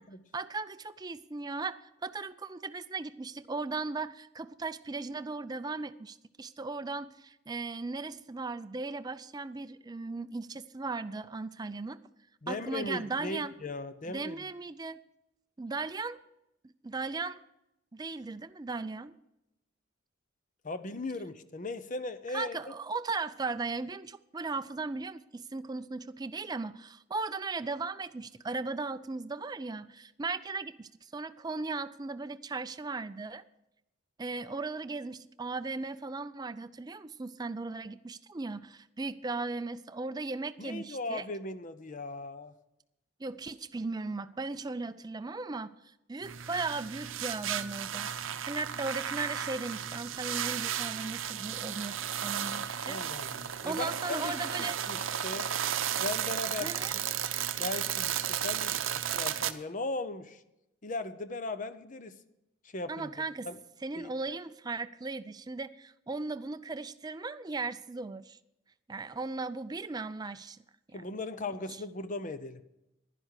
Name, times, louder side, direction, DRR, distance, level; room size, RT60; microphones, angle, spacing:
voice 1, 0.3-12.0 12.5-13.5 14.1-15.0 15.6-16.2 16.8-17.4 17.9-19.1 22.3-33.4 34.2-41.3 43.2-45.7 46.1-48.1 48.4-52.0 52.2-53.0 53.6-54.8 56.6-56.9 62.9-63.5 63.8-68.4 68.9-70.6 70.9-71.0, right 3 dB, 20° right, 12 dB, 0.4 m, -37 dB
voice 2, 12.4-14.4 20.6-22.7 40.6-42.5 52.9-55.5 56.0-57.0 57.6-60.4 60.8-62.2 62.7-63.1 63.4-63.6 64.0-64.1 70.9-72.6, left 2 dB, 40° left, 12 dB, 0.7 m, -38 dB
sound 1, 46.2-59.5, right 9 dB, 70° right, 0.7 m, -34 dB
11.0 x 10.5 x 6.5 m, 0.88 s
head